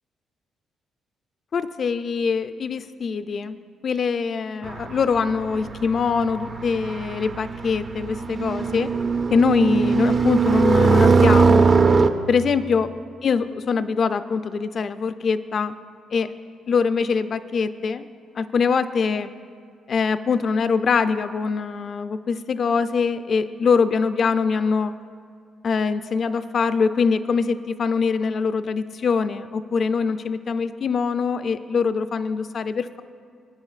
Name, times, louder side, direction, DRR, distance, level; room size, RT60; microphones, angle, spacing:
voice 1, 1.5-3.6 3.8-8.9 9.3-11.7 12.3-12.9 13.2-15.7 16.1-16.3 16.7-18.0 18.4-19.3 19.9-24.9 25.6-33.0, left 5 dB, 50° left, 12 dB, 0.4 m, -23 dB
sound 1, 4.6-12.1, right 4 dB, 45° right, 0.5 m, -20 dB
20.0 x 9.7 x 2.4 m, 2.2 s
cardioid pair, 90°, 0 cm